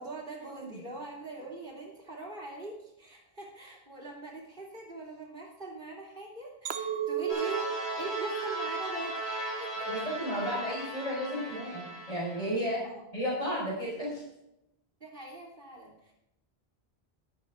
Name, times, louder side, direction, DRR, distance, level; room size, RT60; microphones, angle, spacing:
voice 1, 0.0-10.1 12.8-12.9 15.0-16.1, right 2 dB, 55° right, -6 dB, 3.0 m, -42 dB
Chink clink, 6.7-11.0 11.5-11.9, right 10 dB, 85° right, 1.0 m, -37 dB
sound 1, 7.3-12.5, right 1 dB, 80° left, 5.2 m, -37 dB
voice 2, 9.8-12.9 13.1-14.2, equal, 35° left, -4 dB, 5.2 m, -33 dB
13.5 x 11.5 x 3.6 m, 0.87 s
omnidirectional pair, 1.1 m